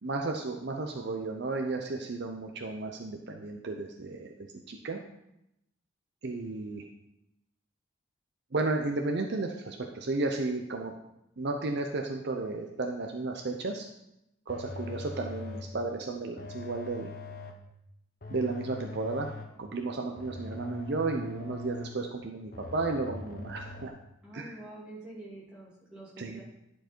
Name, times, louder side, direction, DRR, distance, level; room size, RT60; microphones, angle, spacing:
voice 1, 0.0-4.3 4.7-5.0 6.2-6.8 8.5-10.9 11.4-13.9 14.5-17.1 18.3-19.3 19.6-23.9 24.3-24.6 26.2-26.4, right 3 dB, 50° right, 3 dB, 0.6 m, -33 dB
sound 1, 14.5-15.8 16.4-17.7 18.2-19.7 20.2-22.1 22.5-23.9, left 3 dB, 40° left, 0.9 m, -42 dB
voice 2, 24.2-26.4, right 1 dB, 5° right, -8 dB, 2.6 m, -46 dB
10.5 x 4.7 x 4.4 m, 0.84 s
head